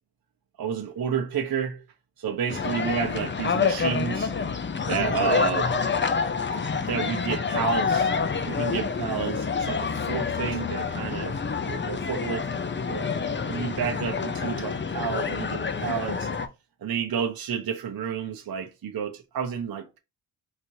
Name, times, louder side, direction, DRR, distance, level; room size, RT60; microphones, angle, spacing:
voice 1, 0.6-1.8 2.2-4.3 4.9-5.8 6.8-8.1 8.5-11.4 11.6-12.5 12.9-13.1 13.5-16.3 16.8-20.0, right 7 dB, 50° right, 0.8 m, -30 dB
sound 1, 2.5-16.5, left 5 dB, 25° left, 0.6 m, -27 dB
4.0 x 3.0 x 2.7 m
cardioid pair, 60°, 47 cm